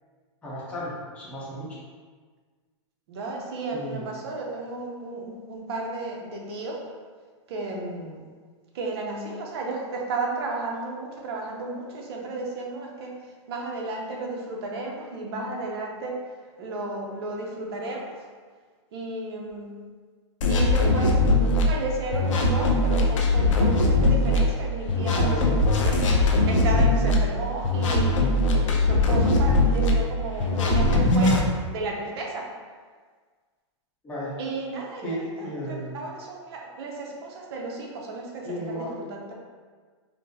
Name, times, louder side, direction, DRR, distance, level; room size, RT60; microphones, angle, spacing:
voice 1, 0.4-1.7 3.7-4.1 21.0-21.1 25.1-25.6 34.0-34.4 35.0-36.0 38.4-38.9, equal, 10° left, -9 dB, 0.8 m, -34 dB
voice 2, 3.1-6.9 7.5-8.3 8.7-16.2 16.6-18.3 18.9-19.8 20.5-21.1 21.4-26.1 26.5-28.2 28.5-32.5 34.4-39.3, right 2 dB, 55° right, -1 dB, 0.7 m, -33 dB
sound 1, 20.4-21.6 22.1-24.4 24.9-27.1 27.6-29.9 30.4-31.4, left 2 dB, 90° left, 0.6 m, -21 dB
4.1 x 2.0 x 2.8 m, 1.5 s
supercardioid pair, 155°, 16 cm